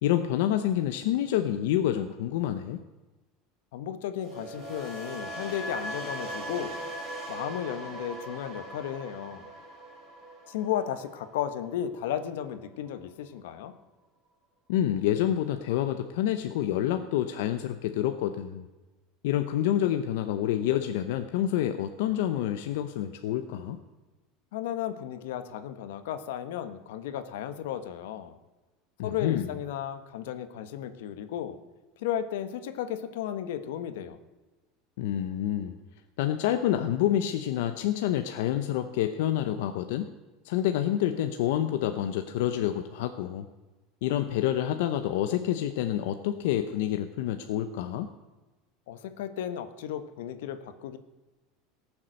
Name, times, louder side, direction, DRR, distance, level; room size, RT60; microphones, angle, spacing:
voice 1, 0.0-2.8 14.7-18.7 19.2-23.8 29.0-29.5 35.0-35.8 36.2-40.1 40.4-43.5 44.0-48.1, left 11 dB, 70° left, 8 dB, 0.7 m, -28 dB
voice 2, 3.7-6.8 7.3-9.5 10.5-13.7 24.5-28.3 29.0-31.6 32.0-34.2 48.9-51.0, left 10 dB, 90° left, 11 dB, 1.1 m, -34 dB
sound 1, 4.2-12.3 12.5-12.9, right 1 dB, 15° right, 3.2 m, -40 dB
18.5 x 7.3 x 6.5 m, 1.2 s
supercardioid pair, 175°, 0 cm